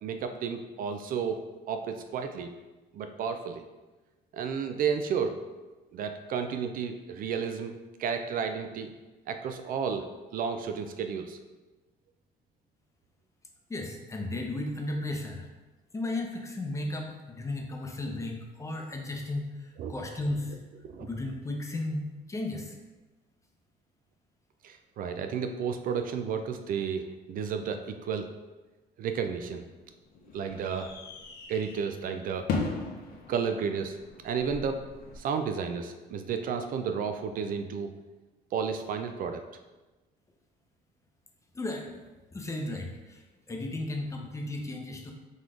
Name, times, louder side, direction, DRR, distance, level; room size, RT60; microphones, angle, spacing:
voice 1, 0.0-2.5 2.9-3.6 4.3-5.4 5.9-7.7 8.0-8.9 9.3-11.4 19.8-19.9 20.8-21.1 24.6-28.3 29.0-29.7 30.3-30.9 31.5-32.4 33.3-34.0 34.2-34.8 35.2-37.9 38.5-39.4, right 6 dB, 55° right, 7 dB, 0.4 m, -32 dB
voice 2, 13.7-15.5 15.9-19.5 19.9-20.6 21.0-22.8 41.5-41.9 42.3-43.2 43.5-45.1, left 2 dB, 20° left, 1 dB, 0.7 m, -34 dB
sound 1, 29.2-35.2, left 4 dB, 65° left, 0.8 m, -38 dB
3.9 x 3.1 x 3.7 m, 1.2 s
cardioid pair, 110°, 17 cm